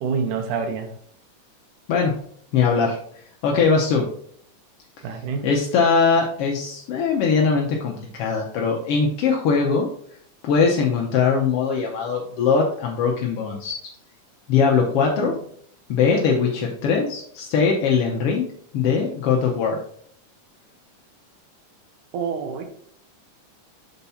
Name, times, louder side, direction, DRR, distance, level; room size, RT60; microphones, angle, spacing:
voice 1, 0.0-0.9 5.0-5.5 15.0-15.4 22.1-22.7, right 5 dB, 85° right, 5 dB, 2.4 m, -27 dB
voice 2, 1.9-2.2 2.5-3.0 3.4-4.1 5.4-9.9 10.4-13.7 14.5-15.3 15.9-18.5 18.7-19.8, left 5 dB, 70° left, -1 dB, 1.4 m, -21 dB
6.9 x 4.5 x 4.2 m, 0.62 s
omnidirectional pair, 3.6 m